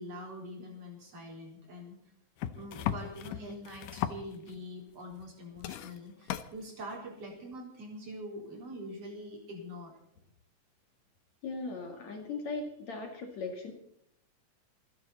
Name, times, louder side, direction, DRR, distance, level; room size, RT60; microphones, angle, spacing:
voice 1, 0.0-2.0 2.5-9.9, equal, 45° right, -1 dB, 5.1 m, -44 dB
sound 1, 2.4-4.6 5.1-5.3 5.6-6.5 7.5-7.6, left 11 dB, 75° left, 2.4 m, -37 dB
voice 2, 11.4-13.7, left 3 dB, 55° left, 3 dB, 3.2 m, -38 dB
27.5 x 10.5 x 4.2 m, 0.73 s
omnidirectional pair, 3.9 m